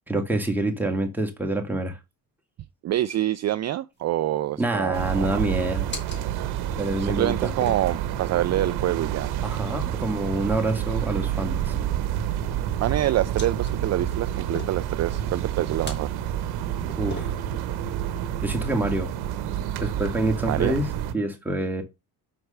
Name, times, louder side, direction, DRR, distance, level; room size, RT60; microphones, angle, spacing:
voice 1, 0.1-2.0 4.6-5.9 6.8-7.5 9.4-11.7 17.0-17.3 18.4-19.1 19.8-21.8, right 2 dB, 5° right, 2.1 m, -26 dB
voice 2, 2.8-5.4 7.0-9.3 12.5-16.1 20.5-20.8, right 13 dB, 45° right, 0.5 m, -26 dB
sound 1, 3.9-19.3, left 2 dB, 25° left, 3.1 m, -45 dB
sound 2, 4.9-21.1, right 10 dB, 80° right, 1.1 m, -29 dB
5.9 x 4.6 x 6.6 m
cardioid pair, 100°, 38 cm